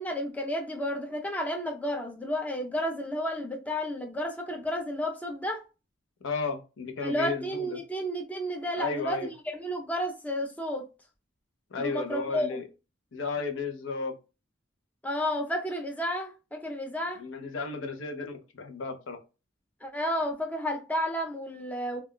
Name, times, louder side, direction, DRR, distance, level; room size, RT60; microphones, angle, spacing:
voice 1, 0.0-5.6 7.0-10.8 11.8-12.6 15.0-17.2 19.8-22.0, equal, 10° left, 0.4 m, -32 dB
voice 2, 6.2-7.8 8.8-9.3 11.7-12.6 13.1-14.1 17.2-19.2, left 4 dB, 90° left, 0.6 m, -33 dB
2.3 x 2.2 x 3.6 m
head